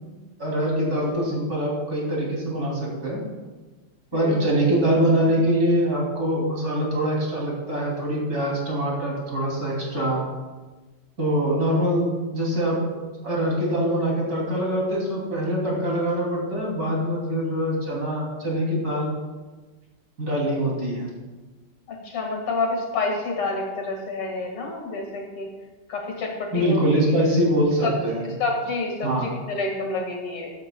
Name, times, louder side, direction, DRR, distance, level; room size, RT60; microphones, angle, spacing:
voice 1, 0.4-3.2 4.1-10.2 11.2-19.1 20.2-21.1 26.5-28.4 29.0-29.3, equal, 45° right, -3 dB, 3.4 m, -24 dB
voice 2, 4.1-4.4 21.9-25.5 25.9-26.8 27.8-27.9 28.4-30.5, left 3 dB, 85° left, 1 dB, 2.8 m, -28 dB
13.0 x 12.5 x 2.3 m, 1.3 s
omnidirectional pair, 2.4 m